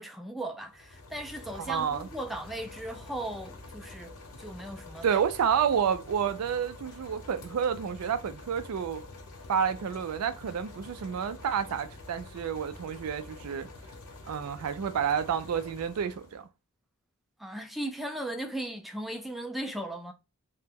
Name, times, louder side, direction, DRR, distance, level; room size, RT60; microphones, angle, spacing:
voice 1, 0.0-5.2 17.4-20.1, right 1 dB, ahead, 0.3 m, -37 dB
sound 1, 0.6-16.4, left 2 dB, 80° left, 0.9 m, -47 dB
voice 2, 1.7-2.1 5.0-9.0 9.5-13.7 14.3-16.5, right 7 dB, 80° right, 0.4 m, -29 dB
2.9 x 2.1 x 3.5 m
head